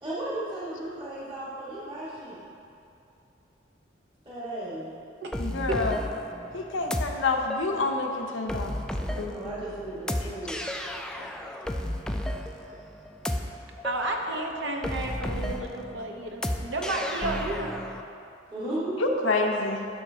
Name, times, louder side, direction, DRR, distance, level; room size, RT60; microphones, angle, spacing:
voice 1, 0.0-2.4 4.2-4.9 9.3-10.6 18.5-19.2, right 1 dB, 30° right, -9 dB, 1.5 m, -35 dB
sound 1, 5.3-18.0, left 1 dB, 5° left, 0.3 m, -33 dB
voice 2, 5.4-6.0 6.5-8.7 9.2-9.6 11.2-11.3 19.0-19.8, left 3 dB, 90° left, 2 dB, 0.7 m, -28 dB
voice 3, 13.8-17.7, right 2 dB, 70° right, 2 dB, 0.8 m, -32 dB
11.5 x 5.7 x 2.7 m, 2.7 s
head